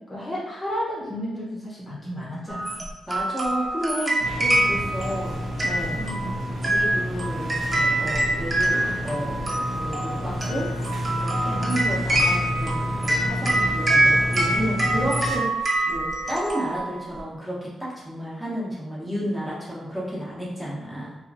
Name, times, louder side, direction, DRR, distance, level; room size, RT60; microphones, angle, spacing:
voice 1, 0.1-2.8 5.9-6.4 11.4-11.8, equal, 25° left, -6 dB, 0.8 m, -32 dB
sound 1, 2.5-17.2, right 1 dB, 30° right, 0.6 m, -25 dB
voice 2, 3.1-5.3 5.6-6.0 6.6-8.7 9.0-10.7 11.1-21.2, equal, 10° right, -7 dB, 0.9 m, -32 dB
sound 2, 4.2-15.4, equal, 85° right, 1.0 m, -30 dB
2.8 x 2.4 x 2.5 m, 1.0 s
cardioid pair, 90°, 0 cm